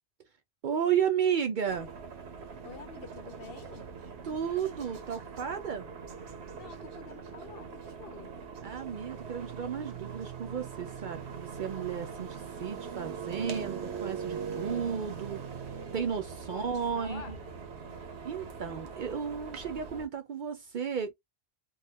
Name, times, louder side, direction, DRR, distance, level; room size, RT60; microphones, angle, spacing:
voice 1, 0.6-1.9 4.2-5.9 8.6-15.4 15.9-17.4 18.2-21.1, right 7 dB, 60° right, 0.6 m, -33 dB
sound 1, 1.7-20.1, right 6 dB, 80° right, 1.0 m, -42 dB
voice 2, 2.6-3.9 6.5-8.4 16.5-17.4, left 7 dB, 65° left, 0.8 m, -48 dB
3.0 x 2.3 x 3.1 m
omnidirectional pair, 1.1 m